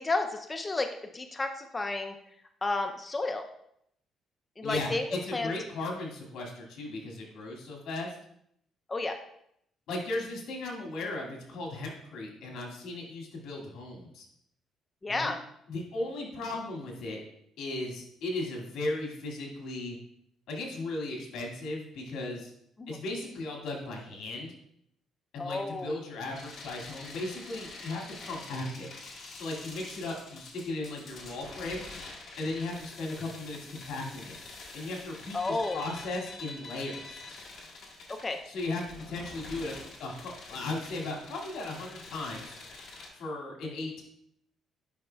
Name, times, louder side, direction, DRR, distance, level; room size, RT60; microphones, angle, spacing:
voice 1, 0.0-2.1 2.6-3.5 4.6-5.0 5.3-5.5 8.9-9.2 15.0-15.4 22.8-23.0 25.4-26.0 35.3-35.8 38.2-38.4, left 3 dB, 20° left, 5 dB, 0.4 m, -31 dB
voice 2, 4.6-8.2 9.9-14.3 15.1-15.3 15.7-17.2 17.6-20.0 20.5-22.5 22.9-24.5 25.3-28.9 29.3-31.9 32.4-34.4 34.7-37.2 38.4-39.7 40.0-42.6 43.1-44.0, left 2 dB, 75° left, -1 dB, 2.1 m, -36 dB
sound 1, 26.3-43.1, left 3 dB, 50° left, 1.5 m, -46 dB
9.8 x 5.2 x 2.3 m, 0.73 s
cardioid pair, 140°, 0 cm